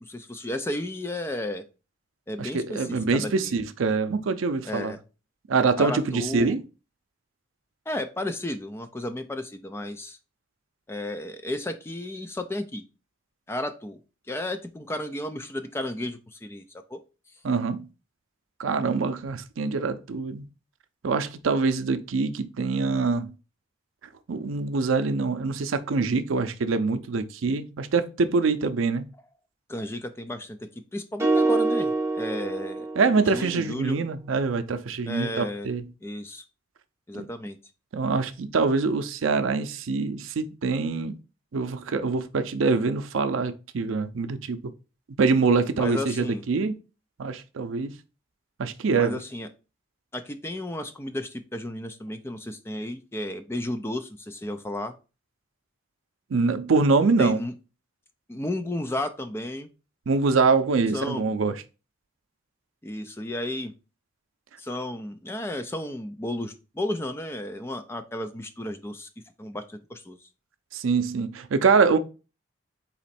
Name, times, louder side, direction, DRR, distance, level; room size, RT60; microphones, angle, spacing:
voice 1, 0.0-1.6 2.3-3.6 4.7-5.0 5.8-6.6 7.9-10.2 10.9-12.8 13.5-14.0 14.3-16.6 16.9-17.0 29.7-32.9 33.3-34.0 35.1-35.7 36.0-36.4 37.1-37.6 45.7-46.4 48.9-49.5 50.1-54.9 57.2-57.5 58.3-59.7 60.9-61.2 62.8-63.7 64.6-69.1 69.4-70.2, left 1 dB, 10° left, 0.3 m, -33 dB
voice 2, 2.4-4.9 5.5-6.6 17.4-17.8 18.6-20.4 21.0-23.3 24.3-29.0 33.0-35.8 37.1-37.3 37.9-41.1 41.5-44.6 45.2-46.7 47.2-47.9 48.6-49.2 56.3-57.4 60.1-61.6 70.7-72.0, right 4 dB, 85° right, 0.5 m, -24 dB
sound 1, 31.2-33.5, right 2 dB, 15° right, 0.8 m, -25 dB
4.2 x 3.0 x 4.2 m
head